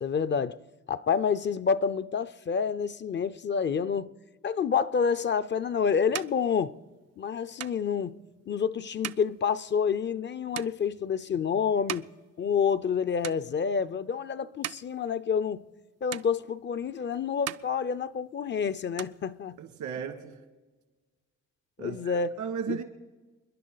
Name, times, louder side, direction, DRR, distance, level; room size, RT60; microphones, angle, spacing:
voice 1, 0.0-0.6 0.9-4.1 4.4-6.8 7.2-8.2 8.5-12.1 12.4-15.6 16.0-19.6 21.8-22.3 22.7-22.8, left 6 dB, 40° left, 0.5 m, -28 dB
sound 1, 5.3-12.9 13.2-13.9 14.4-15.8 16.1-17.0 17.3-18.5 18.8-19.9, right 12 dB, 55° right, 0.5 m, -42 dB
voice 2, 19.6-20.4 21.8-22.8, right 7 dB, 85° right, 2.1 m, -35 dB
29.0 x 10.5 x 4.0 m
cardioid pair, 90°, 30 cm